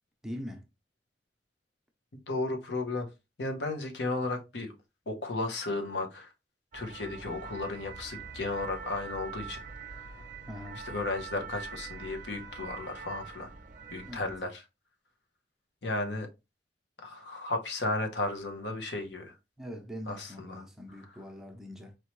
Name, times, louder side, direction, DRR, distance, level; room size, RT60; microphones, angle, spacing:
voice 1, 0.2-0.7 10.5-10.8 14.1-14.3 19.6-22.0, equal, 5° right, 0.7 m, -42 dB
voice 2, 2.3-3.1 3.4-4.7 5.1-6.3 6.7-9.6 9.9-10.0 10.8-13.5 13.9-14.6 15.8-16.3 17.0-19.3 20.1-20.7, left 2 dB, 80° left, 0.9 m, -34 dB
sound 1, 6.7-14.4, right 5 dB, 50° right, 0.7 m, -44 dB
4.6 x 3.1 x 3.1 m
head